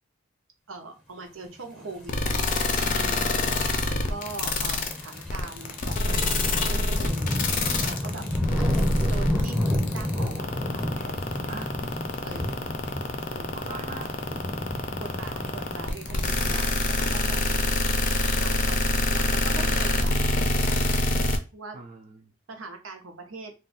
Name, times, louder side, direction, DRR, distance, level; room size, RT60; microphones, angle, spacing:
voice 1, 0.7-3.4 3.8-7.4 7.8-8.3 8.6-8.8 9.1-11.5 12.2-12.5 13.3-13.7 15.0-17.4 18.4-18.8 19.1-21.1 21.5-21.8 22.5-23.5, right 3 dB, 70° right, 4 dB, 0.7 m, -42 dB
sound 1, 2.1-21.4, left 2 dB, 40° left, 0.5 m, -25 dB
sound 2, 2.4-16.5, left 1 dB, 5° left, 0.8 m, -31 dB
voice 2, 11.5-11.8 12.2-12.8 13.5-14.1 21.7-22.3, right 3 dB, 40° right, 1 dB, 0.4 m, -41 dB
2.5 x 2.3 x 3.9 m, 0.29 s
head